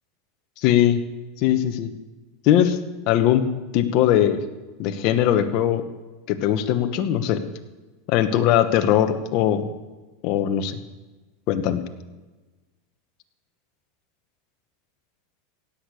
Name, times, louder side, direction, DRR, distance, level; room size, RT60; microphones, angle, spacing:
voice 1, 0.6-1.0 1.4-1.9 2.4-2.8 3.1-3.4 3.7-4.4 4.8-5.8 6.3-7.4 8.1-9.6 10.2-10.8 11.5-11.8, left 11 dB, 50° left, 8 dB, 1.2 m, -20 dB
16.5 x 6.7 x 8.5 m, 1.2 s
supercardioid pair, 150°, 0 cm